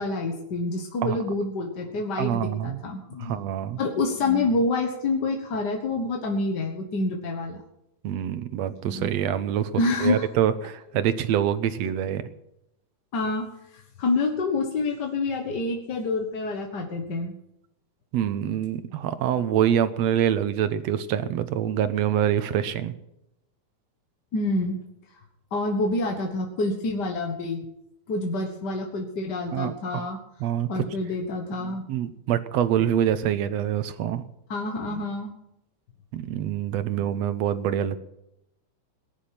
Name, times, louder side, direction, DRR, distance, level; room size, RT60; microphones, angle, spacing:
voice 1, 0.0-3.4 3.8-7.6 8.8-9.1 9.7-10.3 13.1-17.3 24.3-24.8 25.5-27.7 28.1-30.2 30.7-31.8 34.5-35.3 37.0-37.2, left 2 dB, 45° left, 3 dB, 1.5 m, -27 dB
voice 2, 2.2-2.8 3.2-3.8 8.0-9.7 10.0-12.3 18.1-22.9 29.5-30.1 30.4-30.9 31.9-34.2 36.1-38.0, right 10 dB, 70° right, 12 dB, 1.9 m, -25 dB
18.5 x 10.5 x 5.8 m, 0.84 s
omnidirectional pair, 3.5 m